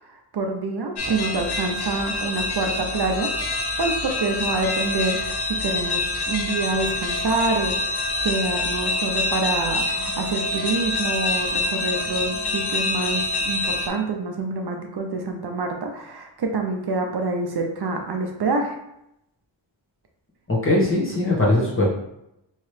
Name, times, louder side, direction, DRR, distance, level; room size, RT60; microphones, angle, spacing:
voice 1, 0.0-18.8, right 3 dB, 55° right, 3 dB, 0.5 m, -27 dB
sound 1, 1.0-13.9, left 2 dB, 55° left, 0.6 m, -26 dB
voice 2, 20.5-21.9, left 2 dB, 25° left, -5 dB, 1.2 m, -20 dB
3.1 x 2.8 x 3.2 m, 0.83 s
wide cardioid pair, 95°, 47 cm